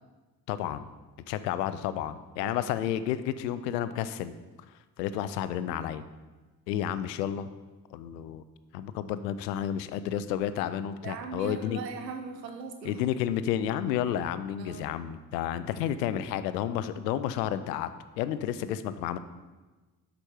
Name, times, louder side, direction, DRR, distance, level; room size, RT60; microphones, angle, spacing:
voice 1, 0.5-0.8 1.3-4.3 5.0-6.0 6.7-7.5 7.9-8.4 8.7-11.8 12.8-17.9 18.2-19.2, left 10 dB, 80° left, 13 dB, 0.7 m, -31 dB
voice 2, 11.0-13.0 14.6-14.9, right 5 dB, 90° right, 6 dB, 1.1 m, -39 dB
12.0 x 5.3 x 4.5 m, 1.2 s
hypercardioid pair, 50°, 49 cm